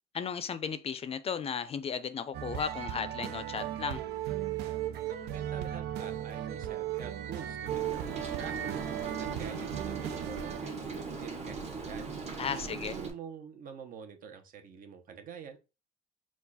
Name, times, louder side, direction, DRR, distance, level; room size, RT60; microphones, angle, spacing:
voice 1, 0.1-4.0 12.4-12.9, left 6 dB, 35° left, 0.5 m, -35 dB
sound 1, 2.3-10.7, right 11 dB, 75° right, 0.5 m, -36 dB
voice 2, 5.1-8.9 9.2-12.1 12.5-15.6, right 7 dB, 55° right, 0.9 m, -47 dB
Rain, 7.7-13.1, right 4 dB, 40° right, 1.4 m, -39 dB
4.6 x 2.4 x 4.0 m
cardioid pair, 110°, 17 cm